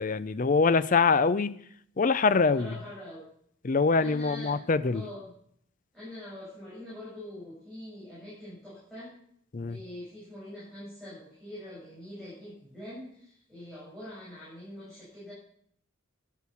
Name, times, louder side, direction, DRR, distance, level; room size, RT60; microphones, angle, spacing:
voice 1, 0.0-1.5 2.0-2.7 3.6-5.0 9.5-9.8, left 4 dB, 40° left, 0.5 m, -24 dB
voice 2, 2.4-3.3 3.9-4.6 4.9-5.3 5.9-9.1 9.7-15.3, left 1 dB, ahead, 7.2 m, -44 dB
11.5 x 9.3 x 7.0 m
head